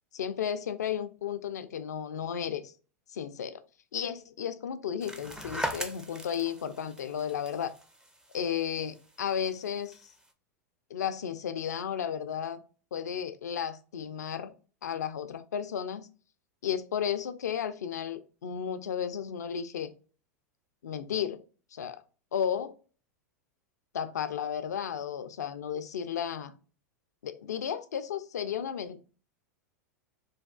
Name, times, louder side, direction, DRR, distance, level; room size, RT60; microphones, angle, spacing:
voice 1, 0.1-2.7 3.1-3.6 3.9-7.7 8.3-10.1 10.9-12.6 12.9-14.5 14.8-16.1 16.6-19.9 20.8-21.4 21.7-22.0 22.3-22.7 23.9-26.6 27.2-29.0, left 8 dB, 80° left, 0.4 m, -33 dB
sound 1, 5.0-10.3, right 1 dB, 10° right, 0.4 m, -40 dB
3.3 x 2.3 x 2.2 m
hypercardioid pair, 100°, 9 cm